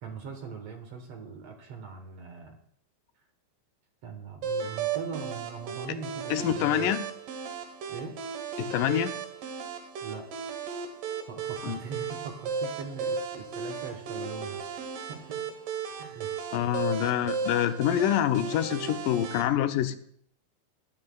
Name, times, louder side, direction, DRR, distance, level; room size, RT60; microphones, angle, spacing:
voice 1, 0.0-2.6 4.0-6.9 7.9-8.2 10.0-10.3 11.3-14.6 15.0-15.5 16.0-16.3 16.7-16.9, right 5 dB, 60° right, 4 dB, 2.0 m, -41 dB
sound 1, 4.4-19.4, right 6 dB, 80° right, 2.8 m, -35 dB
voice 2, 6.3-7.0 8.6-9.1 11.6-11.8 16.5-20.0, left 11 dB, 85° left, 9 dB, 2.3 m, -26 dB
19.0 x 12.0 x 2.3 m, 0.63 s
omnidirectional pair, 3.8 m